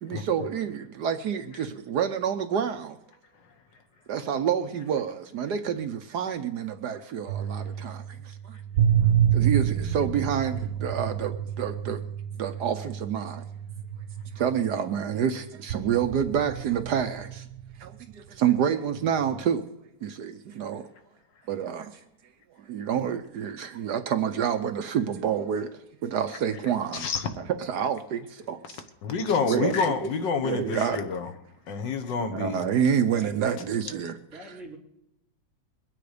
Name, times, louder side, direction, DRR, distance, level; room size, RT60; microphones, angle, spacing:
voice 1, 0.0-3.0 4.1-8.6 9.3-12.0 12.4-13.4 14.4-17.5 17.8-19.6 20.0-20.9 21.5-22.0 22.6-27.1 27.4-28.8 29.4-30.0 30.4-31.1 32.3-34.1, right 8 dB, 70° right, 1.3 m, -28 dB
sound 1, 7.3-15.2 15.7-18.4 19.2-19.4, right 9 dB, 90° right, 1.5 m, -29 dB
voice 2, 26.9-27.3 29.0-31.3 31.7-32.6, left 5 dB, 80° left, 1.8 m, -28 dB
voice 3, 33.1-34.0 34.3-34.8, right 2 dB, ahead, 3.9 m, -44 dB
22.5 x 9.4 x 5.0 m
omnidirectional pair, 1.9 m